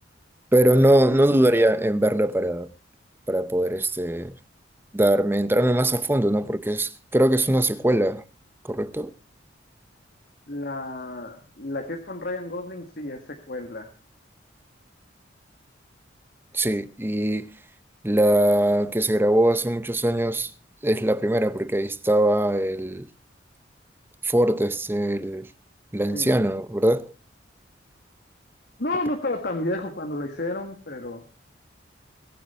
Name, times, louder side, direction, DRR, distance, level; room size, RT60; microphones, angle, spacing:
voice 1, 0.5-2.7 3.3-4.4 4.9-8.2 8.6-9.1 16.5-17.5 18.0-20.5 20.8-23.1 24.2-25.5 25.9-27.1, right 1 dB, 10° right, 0.6 m, -21 dB
voice 2, 10.5-13.9 26.1-26.3 28.8-31.2, left 2 dB, 55° left, 1.8 m, -31 dB
21.5 x 9.2 x 4.3 m
head